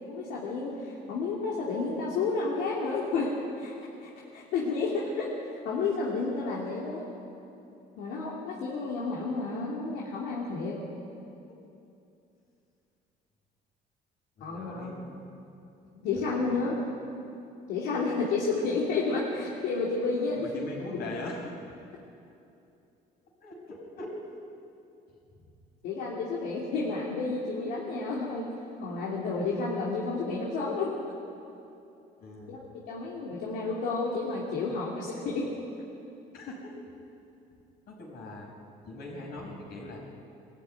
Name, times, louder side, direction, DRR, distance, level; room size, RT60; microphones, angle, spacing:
voice 1, 0.1-3.7 4.0-5.3 5.6-7.1 8.0-10.8 14.4-14.9 15.9-16.7 17.7-20.5 25.8-28.5 28.8-30.9 32.5-32.6 32.9-35.5, left 4 dB, 90° left, -5 dB, 2.8 m, -31 dB
voice 2, 14.4-15.4 16.1-16.6 20.4-21.5 23.4-24.4 25.3-25.4 32.2-32.6 36.3-36.8 37.9-38.5 38.9-40.0, left 2 dB, 70° left, -1 dB, 5.5 m, -41 dB
21.5 x 14.0 x 9.2 m, 2.7 s
cardioid pair, 110°, 17 cm